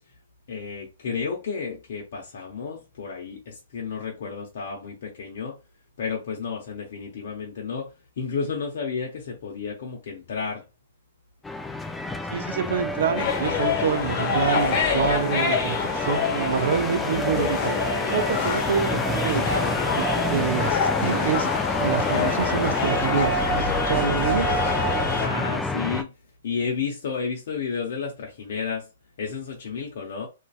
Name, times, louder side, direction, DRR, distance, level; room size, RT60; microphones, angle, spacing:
voice 1, 0.5-5.6 6.0-7.9 8.2-10.6 25.2-26.1 26.4-28.9 29.2-30.3, left 5 dB, 60° left, 0.6 m, -31 dB
sound 1, 11.4-26.0, left 2 dB, 10° left, 0.3 m, -29 dB
voice 2, 12.3-19.5 19.9-24.6, right 7 dB, 60° right, 0.4 m, -27 dB
sound 2, 13.2-25.3, left 4 dB, 35° left, 0.9 m, -26 dB
2.6 x 2.2 x 2.3 m
hypercardioid pair, 120°, 0 cm